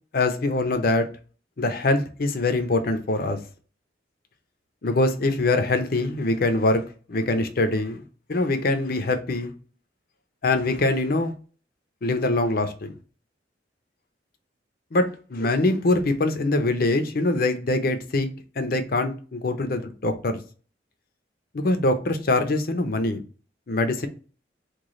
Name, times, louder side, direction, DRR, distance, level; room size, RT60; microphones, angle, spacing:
voice 1, 0.1-1.1 1.6-3.4 4.8-6.8 7.1-8.0 8.3-9.5 10.4-11.3 12.0-12.9 14.9-18.3 18.6-20.4 21.5-23.2 23.7-24.1, left 2 dB, 55° left, 0.6 m, -23 dB
3.1 x 2.3 x 3.6 m
head